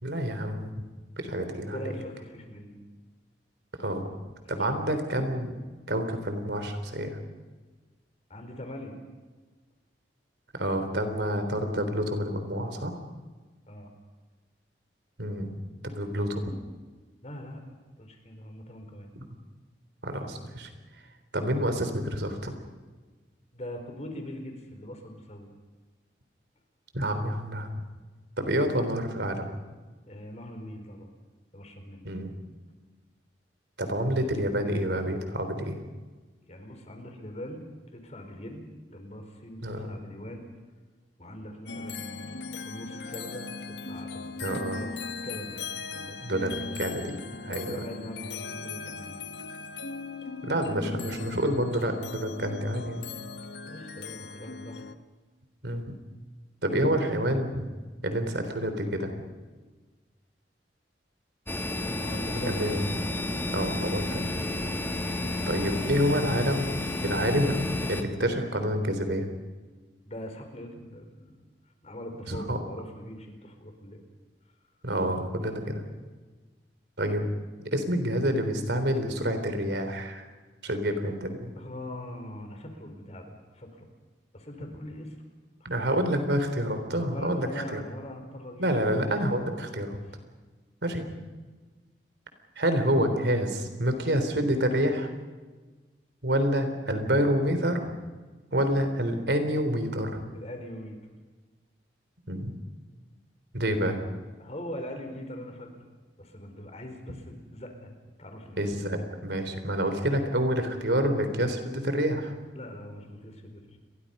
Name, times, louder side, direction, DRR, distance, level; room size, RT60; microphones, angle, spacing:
voice 1, 0.0-0.7 1.2-1.8 3.8-4.0 4.5-5.6 5.9-7.2 10.5-13.0 15.2-15.5 15.8-16.4 20.0-20.7 21.3-22.5 26.9-27.8 28.4-29.5 32.0-32.3 33.8-35.8 39.6-40.0 44.4-44.8 46.2-47.7 50.4-53.0 55.6-55.9 56.6-57.6 58.0-59.1 62.5-62.8 63.5-64.3 65.5-66.7 67.0-69.3 72.3-72.6 74.8-75.8 77.0-77.3 77.7-80.2 80.6-81.5 85.6-87.8 88.6-90.0 90.8-91.1 92.6-95.1 96.2-97.9 98.5-100.2 102.3-102.5 103.5-104.0 108.6-109.0 109.2-112.3, equal, 75° right, 8 dB, 3.6 m, -28 dB
voice 2, 1.7-2.8 4.4-4.6 8.3-9.0 13.7-13.9 17.2-19.1 23.5-25.5 30.1-31.1 31.5-32.1 36.4-37.6 37.9-40.5 41.2-45.0 45.2-46.8 47.5-49.2 53.6-54.8 62.0-62.6 70.1-71.4 71.8-74.0 81.5-83.9 84.3-85.2 85.6-86.0 87.1-88.8 100.3-101.0 104.4-105.7 106.2-107.9 108.2-108.6 112.5-113.8, left 1 dB, 40° left, 5 dB, 4.6 m, -42 dB
sound 1, 41.7-55.0, left 4 dB, 80° left, 1.4 m, -39 dB
sound 2, 61.5-68.0, left 2 dB, 15° left, 2.0 m, -31 dB
30.0 x 22.5 x 5.5 m, 1.3 s
head